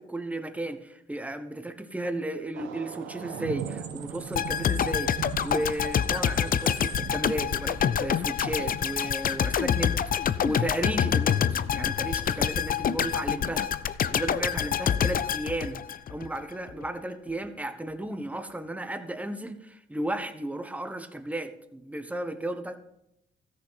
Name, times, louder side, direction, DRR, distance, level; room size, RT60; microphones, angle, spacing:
voice 1, 0.0-13.7 14.1-22.8, right 1 dB, 5° right, 8 dB, 1.2 m, -34 dB
sound 1, 2.5-11.4 12.2-12.3 13.4-13.5 13.8-16.6, right 9 dB, 85° right, 1.0 m, -42 dB
sound 2, 3.6-7.0, right 7 dB, 60° right, 1.0 m, -48 dB
sound 3, 4.3-16.4 16.7-16.8, left 8 dB, 45° left, 0.5 m, -27 dB
13.5 x 6.7 x 5.7 m, 0.79 s
cardioid pair, 90°, 20 cm